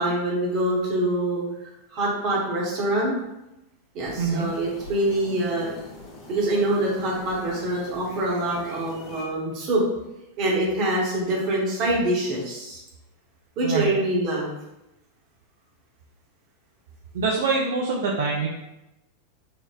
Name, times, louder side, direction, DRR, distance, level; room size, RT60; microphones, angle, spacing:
voice 1, 0.0-3.1 3.9-5.7 6.3-9.8 10.4-12.8 13.6-14.5, right 1 dB, 40° right, -4 dB, 0.9 m, -25 dB
sound 1, 4.0-9.2, left 2 dB, 35° left, 0.6 m, -43 dB
voice 2, 4.2-4.5 13.6-13.9 17.1-18.5, right 4 dB, 60° right, -2 dB, 0.3 m, -24 dB
3.6 x 2.0 x 2.3 m, 0.93 s
figure-of-eight pair, 90°, 0 cm